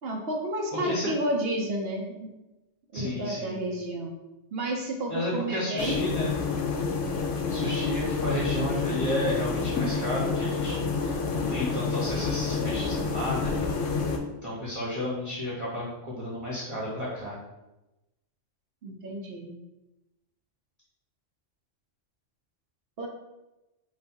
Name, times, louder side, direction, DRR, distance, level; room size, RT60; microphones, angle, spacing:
voice 1, 0.0-2.3 2.9-4.1 4.5-6.0 18.8-19.5 23.0-23.1, right 1 dB, 60° right, 1 dB, 0.9 m, -31 dB
voice 2, 0.7-1.1 2.9-3.6 5.1-6.3 7.5-13.5 14.4-17.4, left 1 dB, 30° right, -7 dB, 1.0 m, -32 dB
the sound of the old railway cables rear, 5.8-14.2, left 4 dB, 80° left, 1.0 m, -28 dB
4.0 x 2.4 x 4.4 m, 0.99 s
omnidirectional pair, 1.3 m